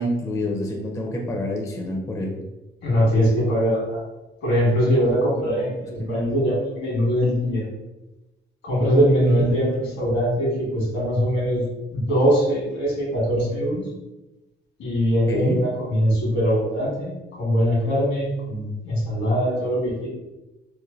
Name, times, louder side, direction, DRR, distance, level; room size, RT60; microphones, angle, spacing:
voice 1, 0.0-2.3 5.4-5.7 6.0-6.3 9.2-9.9 15.3-15.6, equal, 15° left, 1 dB, 0.4 m, -27 dB
voice 2, 2.8-4.0 4.4-7.6 8.6-11.6 11.9-13.8 14.8-20.1, equal, 80° left, -5 dB, 1.5 m, -22 dB
3.1 x 2.1 x 2.4 m, 1.0 s
cardioid pair, 90°, 20 cm